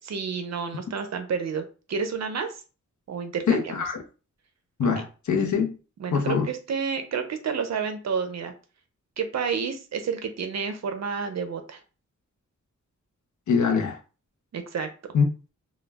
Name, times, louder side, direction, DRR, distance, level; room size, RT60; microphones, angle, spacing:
voice 1, 0.0-2.6 3.1-3.8 4.8-4.9 6.0-8.5 9.2-11.8 14.5-14.9, right 6 dB, 60° right, 0.5 m, -30 dB
voice 2, 3.5-4.0 4.8-5.7 6.1-6.5 13.5-14.0 15.1-15.2, left 6 dB, 70° left, 0.5 m, -23 dB
2.2 x 2.0 x 3.3 m
wide cardioid pair, 100°, 30 cm